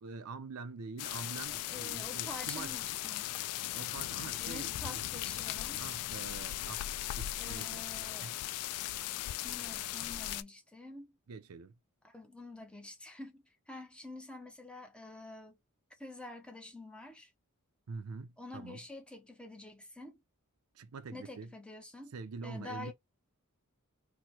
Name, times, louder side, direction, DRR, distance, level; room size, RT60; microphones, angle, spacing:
voice 1, 0.0-2.8 3.7-5.1 5.8-6.9 7.2-7.8 8.2-8.4 11.3-11.7 17.9-18.8 20.7-21.5 22.1-22.9, right 4 dB, 75° right, 0.5 m, -45 dB
sound 1, 1.0-10.4, left 14 dB, 85° left, 0.3 m, -38 dB
voice 2, 1.7-3.3 4.4-5.8 7.4-8.4 9.4-11.1 12.0-15.6 16.0-17.3 18.4-20.2 21.1-22.1 22.4-22.9, left 2 dB, 5° left, 0.6 m, -48 dB
4.3 x 2.1 x 2.9 m
head